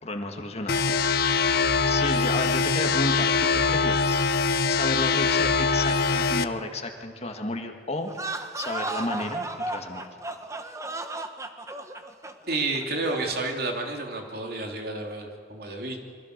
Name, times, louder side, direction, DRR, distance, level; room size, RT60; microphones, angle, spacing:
voice 1, 0.0-4.2 4.6-8.1 8.6-10.1, left 2 dB, 35° left, 4 dB, 1.8 m, -32 dB
sound 1, 0.7-6.4, left 4 dB, 60° left, 0.7 m, -23 dB
sound 2, 8.1-13.5, right 2 dB, 20° right, 1.2 m, -34 dB
voice 2, 12.5-16.0, right 2 dB, 60° right, 2 dB, 3.0 m, -30 dB
27.0 x 23.0 x 6.7 m, 2.1 s
head